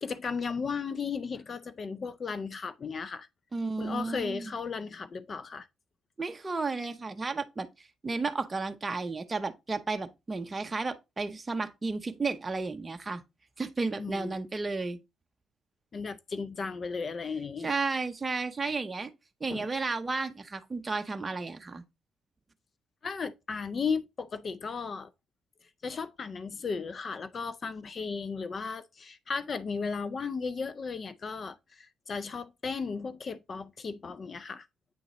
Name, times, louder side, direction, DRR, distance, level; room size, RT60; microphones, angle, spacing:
voice 1, 0.0-3.3 3.8-5.7 14.0-14.3 15.9-17.7 19.5-19.7 23.0-25.1 25.8-34.7, left 5 dB, 40° left, 0.4 m, -35 dB
voice 2, 3.5-4.5 6.2-13.2 13.6-15.0 17.6-19.1 19.4-21.8, right 3 dB, 25° right, 0.6 m, -33 dB
8.5 x 3.9 x 3.0 m
cardioid pair, 90°, 0 cm